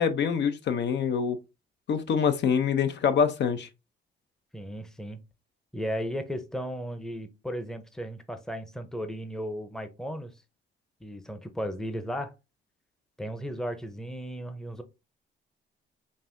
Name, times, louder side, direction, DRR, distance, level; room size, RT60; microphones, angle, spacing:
voice 1, 0.0-1.4 1.9-3.7, left 7 dB, 60° left, 0.6 m, -25 dB
voice 2, 4.5-5.2 5.7-10.3 11.0-12.3 13.2-14.8, equal, 5° left, 0.6 m, -35 dB
5.2 x 2.6 x 2.6 m
cardioid pair, 90°, 20 cm